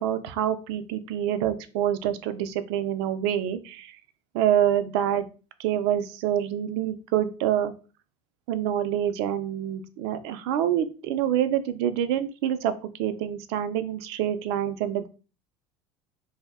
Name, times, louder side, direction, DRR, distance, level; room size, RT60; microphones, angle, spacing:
voice 1, 0.0-4.0 4.3-5.3 5.6-7.7 8.5-15.1, right 10 dB, 85° right, 12 dB, 0.4 m, -26 dB
2.6 x 2.1 x 3.5 m, 0.34 s
supercardioid pair, 115°, 14 cm